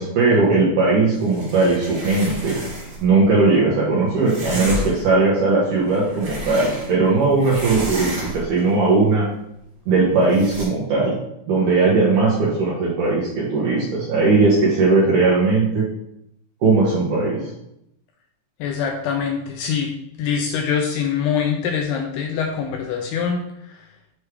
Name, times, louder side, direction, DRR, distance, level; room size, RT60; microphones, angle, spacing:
voice 1, 0.0-2.6 3.0-9.3 9.9-11.2 11.5-15.9 16.6-17.5, right 3 dB, 70° right, -6 dB, 2.0 m, -18 dB
sound 1, 1.1-3.1 4.3-5.1 5.8-7.1 7.4-8.6 10.3-10.7, equal, 55° right, 1.4 m, -31 dB
voice 2, 18.6-19.9 20.2-23.4, left 7 dB, 80° left, 2 dB, 2.4 m, -24 dB
7.1 x 3.2 x 4.8 m, 0.79 s
omnidirectional pair, 5.1 m